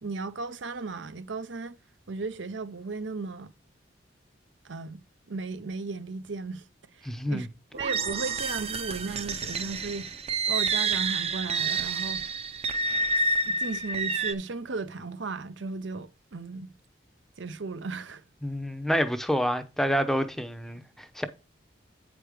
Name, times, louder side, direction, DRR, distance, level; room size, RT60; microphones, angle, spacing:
voice 1, 0.0-1.8 2.1-3.5 4.6-5.0 5.3-6.6 6.9-7.5 7.7-10.1 10.5-12.2 13.4-16.7 17.4-18.2, right 3 dB, 75° right, 0.7 m, -35 dB
voice 2, 7.0-7.5 18.4-21.3, equal, ahead, 0.6 m, -28 dB
sound 1, 7.7-14.3, right 3 dB, 30° right, 0.6 m, -29 dB
8.8 x 5.1 x 4.9 m
head